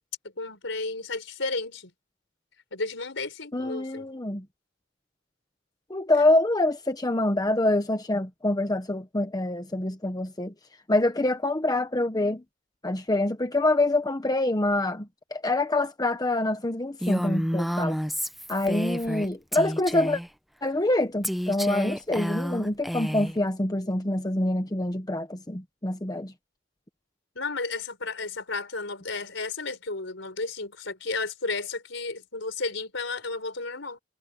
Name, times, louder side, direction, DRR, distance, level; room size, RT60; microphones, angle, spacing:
voice 1, 0.4-1.9 2.7-4.1 27.4-34.0, left 3 dB, 70° left, 5.6 m, -33 dB
voice 2, 3.5-4.4 5.9-10.5 10.9-12.4 12.8-18.0 18.5-20.2 20.6-26.3, left 2 dB, 20° left, 1.1 m, -26 dB
Female speech woman speaking, 17.0-19.3 19.5-20.3 21.2-23.4, equal, ahead, 0.7 m, -30 dB
head